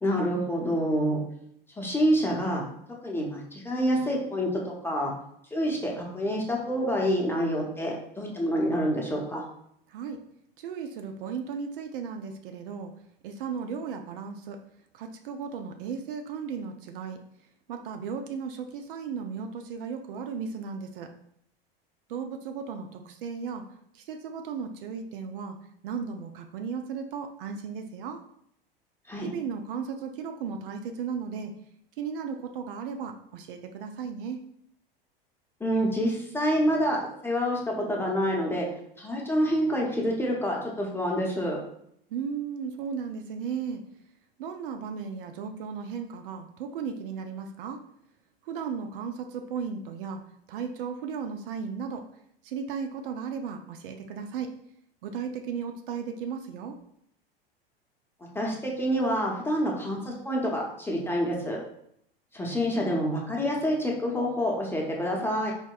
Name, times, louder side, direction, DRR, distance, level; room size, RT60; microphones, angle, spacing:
voice 1, 0.0-1.2 1.8-2.6 3.0-5.1 5.5-9.4 29.1-29.3 35.6-38.7 39.0-41.6 58.3-61.6 62.3-65.5, equal, 5° left, -2 dB, 0.8 m, -27 dB
voice 2, 9.9-10.2 10.6-12.9 13.2-14.6 14.9-17.2 17.7-21.1 22.1-23.7 23.9-25.6 25.8-28.2 29.2-31.5 32.0-34.5 42.1-43.8 44.4-47.8 48.4-50.2 50.5-52.1 52.4-54.6 55.0-56.8, right 6 dB, 60° right, 6 dB, 0.5 m, -35 dB
4.3 x 2.8 x 2.2 m, 0.70 s
hypercardioid pair, 85°, 30 cm